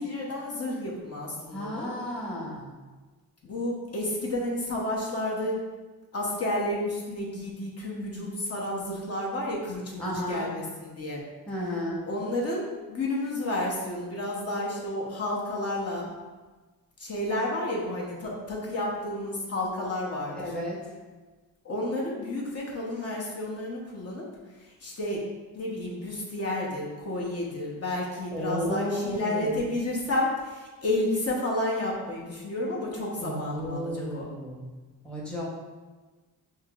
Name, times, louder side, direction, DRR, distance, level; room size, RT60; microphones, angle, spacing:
voice 1, 0.0-1.9 3.4-5.6 6.1-11.2 12.0-16.1 17.0-20.4 21.6-24.2 24.8-25.2 25.5-34.3, left 1 dB, 40° left, -4 dB, 0.9 m, -31 dB
voice 2, 1.5-2.7 10.0-10.5 11.5-12.0 20.4-20.8 28.3-29.7 33.2-34.7 35.0-35.4, equal, 5° left, -5 dB, 0.8 m, -33 dB
5.6 x 2.8 x 2.4 m, 1.3 s
cardioid pair, 105°, 37 cm